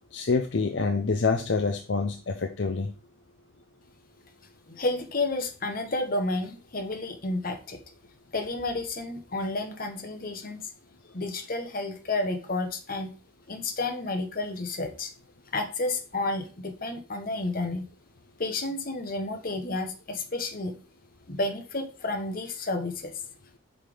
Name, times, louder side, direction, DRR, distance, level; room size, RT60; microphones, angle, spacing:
voice 1, 0.1-2.9, left 4 dB, 60° left, 5 dB, 0.6 m, -26 dB
voice 2, 4.7-7.8 8.3-10.7 11.1-13.1 13.5-15.1 15.5-17.8 18.4-20.7 21.3-23.1, left 2 dB, 45° left, 5 dB, 1.1 m, -31 dB
5.8 x 5.1 x 5.0 m, 0.37 s
head